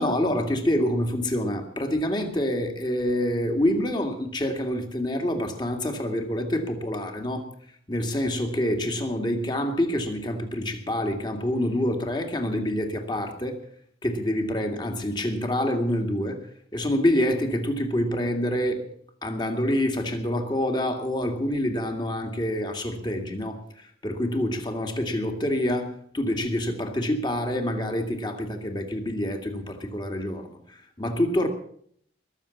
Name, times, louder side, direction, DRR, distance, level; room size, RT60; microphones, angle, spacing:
voice 1, 0.0-7.5 7.9-13.6 14.0-16.4 16.7-18.9 19.2-31.5, left 1 dB, 25° left, 4 dB, 2.3 m, -27 dB
21.5 x 7.3 x 7.1 m, 0.64 s
head